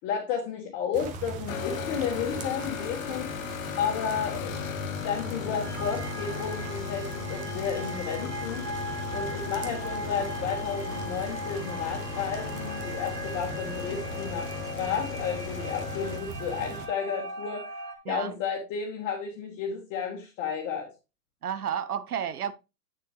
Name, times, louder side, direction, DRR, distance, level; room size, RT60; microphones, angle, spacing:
voice 1, 0.0-3.3 3.8-8.6 9.1-17.6 18.1-20.9, left 7 dB, 30° left, 1.7 m, -32 dB
sound 1, 0.9-16.9, right 4 dB, 15° right, 0.8 m, -40 dB
sound 2, 1.5-16.2, left 11 dB, 55° left, 0.8 m, -37 dB
sound 3, 5.6-18.0, right 1 dB, 90° right, 2.2 m, -39 dB
voice 2, 21.4-22.5, right 8 dB, 65° right, 0.7 m, -31 dB
8.5 x 6.6 x 3.1 m
figure-of-eight pair, 110°, 47 cm